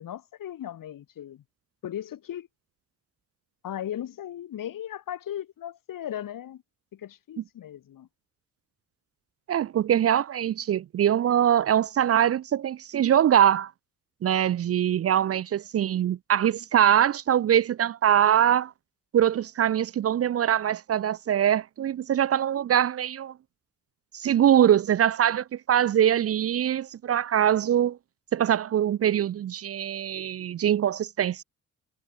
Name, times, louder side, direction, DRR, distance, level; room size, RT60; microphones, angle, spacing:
voice 1, 0.0-1.4 1.8-2.5 3.6-6.6 6.9-8.1, left 11 dB, 70° left, 1.9 m, -37 dB
voice 2, 9.5-13.7 14.2-18.7 19.1-23.3 24.1-28.0 28.3-31.4, right 10 dB, 45° right, 0.4 m, -23 dB
cardioid pair, 95°, 34 cm